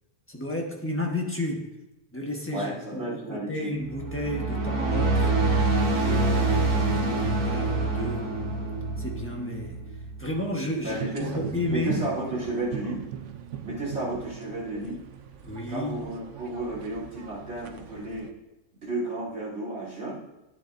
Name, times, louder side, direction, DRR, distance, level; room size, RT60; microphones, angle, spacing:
voice 1, 0.3-1.7 2.1-5.4 6.0-8.3 9.0-9.8 10.2-12.1 15.4-16.1, left 1 dB, 10° left, 0 dB, 1.2 m, -32 dB
voice 2, 2.5-3.7 10.8-13.0 13.6-15.0 15.7-18.3 18.8-20.2, right 2 dB, 45° right, -7 dB, 3.5 m, -33 dB
sound 1, 3.8-10.5, right 3 dB, 85° right, 1.8 m, -26 dB
sound 2, 10.9-18.3, right 10 dB, 65° right, 0.9 m, -39 dB
11.0 x 10.0 x 2.6 m, 0.97 s
omnidirectional pair, 1.5 m